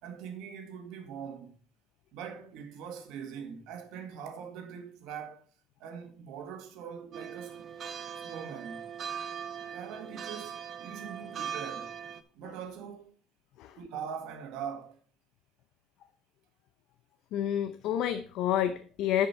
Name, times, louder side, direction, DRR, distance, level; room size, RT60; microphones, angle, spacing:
voice 1, 0.0-1.6 2.1-5.4 5.8-7.7 8.2-8.8 9.7-12.0 12.3-13.1 13.8-15.0, right 7 dB, 70° right, 1.7 m, -42 dB
sound 1, 7.1-12.2, right 8 dB, 35° right, 0.6 m, -40 dB
voice 2, 17.3-19.3, left 10 dB, 60° left, 0.6 m, -29 dB
10.5 x 5.4 x 4.3 m
cardioid pair, 165°, 0 cm